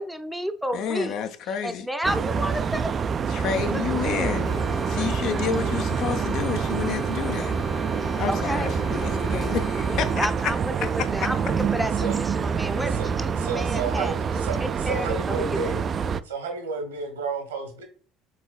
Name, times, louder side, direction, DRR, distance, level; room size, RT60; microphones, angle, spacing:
voice 1, 0.0-1.2 1.6-4.4 8.3-8.7 9.9-15.7, equal, ahead, 0.6 m, -31 dB
voice 2, 0.7-1.9 3.3-7.5 8.2-10.5 10.8-11.3, left 7 dB, 50° left, 0.6 m, -30 dB
sound 1, 2.0-16.2, right 6 dB, 35° right, 0.3 m, -26 dB
sound 2, 4.5-10.2, left 6 dB, 35° left, 1.1 m, -38 dB
voice 3, 13.4-14.6 14.8-15.8 16.2-17.8, right 5 dB, 75° right, 1.2 m, -31 dB
5.6 x 3.9 x 2.3 m
figure-of-eight pair, 60°, 0 cm